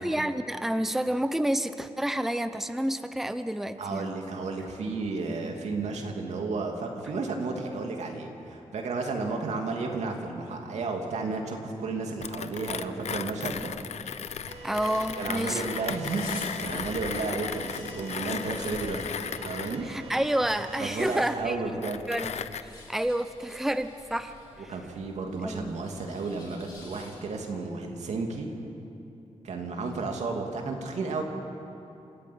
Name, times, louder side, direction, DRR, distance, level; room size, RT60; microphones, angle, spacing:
voice 1, 0.0-4.1 9.6-9.7 14.6-15.7 19.8-21.8 22.1-22.3 22.6-24.7 25.4-25.7, right 1 dB, 5° right, 10 dB, 0.7 m, -29 dB
voice 2, 3.8-13.7 15.2-19.1 19.4-19.9 20.8-22.1 24.7-28.5 29.4-31.2, right 3 dB, 90° right, 2 dB, 2.7 m, -32 dB
Mechanisms, 12.2-22.6, left 7 dB, 80° left, 0.7 m, -36 dB
sound 1, 14.5-21.0, right 2 dB, 70° right, 4.3 m, -44 dB
sound 2, 14.8-27.5, left 2 dB, 35° left, 7.7 m, -52 dB
27.5 x 14.0 x 8.7 m, 2.9 s
wide cardioid pair, 105°, 11 cm